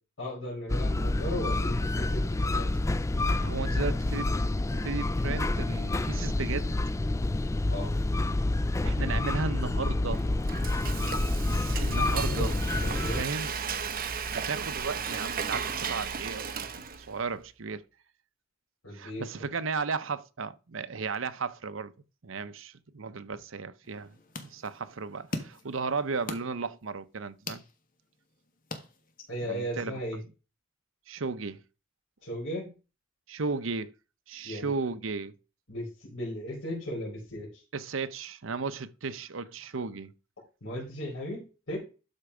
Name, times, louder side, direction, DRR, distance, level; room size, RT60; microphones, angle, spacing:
voice 1, 0.2-2.7 7.7-7.9 12.2-13.2 18.8-19.2 29.3-30.2 32.2-32.7 34.4-34.7 35.7-37.6 40.6-41.8, equal, 80° left, 4.7 m, -36 dB
sound 1, 0.7-13.2, left 2 dB, 15° left, 0.3 m, -28 dB
voice 2, 3.4-4.3 4.7-6.8 8.8-10.3 11.5-12.6 13.1-13.5 14.3-16.6 17.0-17.8 18.9-21.9 22.2-27.6 29.4-29.9 31.1-31.6 33.3-33.9 34.3-35.3 37.7-40.1, right 4 dB, 75° right, 0.8 m, -35 dB
Frying (food), 10.1-17.2, right 6 dB, 45° right, 0.9 m, -35 dB
sound 2, 23.8-29.5, left 2 dB, 45° left, 1.5 m, -43 dB
12.0 x 4.5 x 4.9 m
head